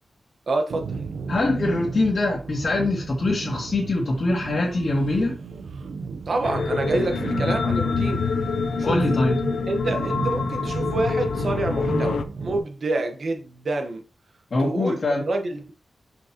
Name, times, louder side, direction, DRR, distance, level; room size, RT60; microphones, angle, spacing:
voice 1, 0.5-1.0 6.3-8.2 8.8-9.1 9.7-14.0 14.6-15.0 15.3-15.7, right 2 dB, 60° right, 1.1 m, -27 dB
sound 1, 0.7-12.6, right 4 dB, 90° right, 0.7 m, -33 dB
voice 2, 1.3-5.4 8.8-9.4 14.5-15.3, left 2 dB, 60° left, 2.0 m, -23 dB
sound 2, 6.4-12.2, left 5 dB, 85° left, 0.5 m, -26 dB
6.3 x 5.3 x 2.9 m
cardioid pair, 75°, 0 cm